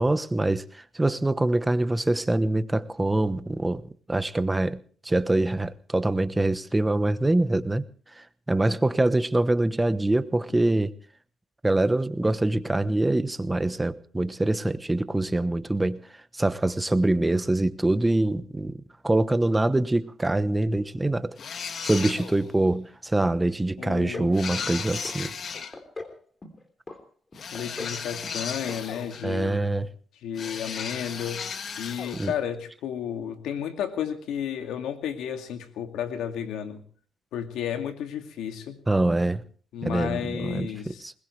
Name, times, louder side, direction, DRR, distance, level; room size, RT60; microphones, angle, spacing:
voice 1, 0.0-3.8 4.1-4.8 5.0-7.8 8.1-10.9 11.6-16.0 16.3-21.4 21.8-25.3 29.2-29.9 32.1-32.3 38.9-39.4 39.8-41.1, right 2 dB, 15° right, 1.0 m, -24 dB
sound 1, 21.4-22.5 24.3-25.7 27.3-29.4 30.4-32.4, left 6 dB, 55° left, 1.7 m, -35 dB
voice 2, 23.8-24.5 27.5-29.6 30.2-31.4 31.8-36.8 37.3-38.8 39.7-41.0, left 9 dB, 85° left, 2.3 m, -32 dB
sound 2, 23.9-24.3 24.6-25.2 25.5-26.2 26.4-27.0 27.3-28.0 28.2-28.4 28.7-28.8 29.1-29.2, left 2 dB, 25° left, 3.2 m, -39 dB
21.0 x 20.5 x 3.3 m
cardioid pair, 90°, 0 cm